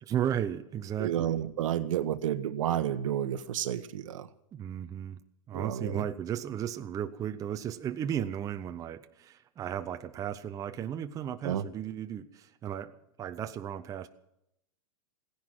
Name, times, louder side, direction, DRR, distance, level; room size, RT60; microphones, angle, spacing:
voice 1, 0.0-1.4 4.5-5.2 5.5-14.1, right 9 dB, 20° right, 8 dB, 0.6 m, -35 dB
voice 2, 1.0-4.3 5.5-6.0 11.4-11.6, right 11 dB, 70° right, 13 dB, 1.1 m, -31 dB
16.5 x 10.5 x 7.6 m, 0.80 s
hypercardioid pair, 130°, 17 cm